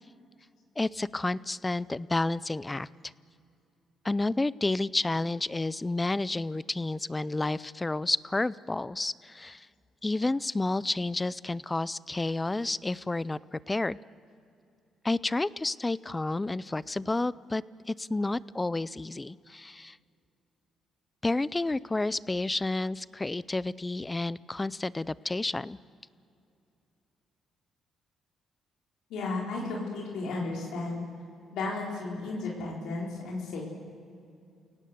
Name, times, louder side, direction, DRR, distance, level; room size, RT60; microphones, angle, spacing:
voice 1, 0.8-2.9 4.0-9.7 10.0-14.0 15.0-20.0 21.2-25.8, left 2 dB, 15° left, 19 dB, 0.5 m, -30 dB
voice 2, 29.1-31.0 31.5-33.6, left 3 dB, 85° left, -3 dB, 4.0 m, -34 dB
29.5 x 18.0 x 8.0 m, 2.6 s
cardioid pair, 90°, 0 cm